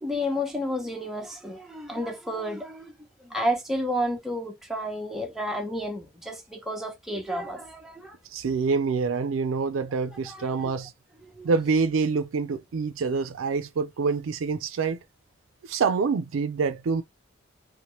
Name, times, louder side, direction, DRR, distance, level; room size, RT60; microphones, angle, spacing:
voice 1, 0.0-8.2 10.3-10.7 11.2-11.5, equal, ahead, 0.7 m, -31 dB
voice 2, 8.3-10.9 11.4-15.0 15.7-17.0, right 5 dB, 85° right, 0.4 m, -26 dB
2.8 x 2.1 x 3.0 m
head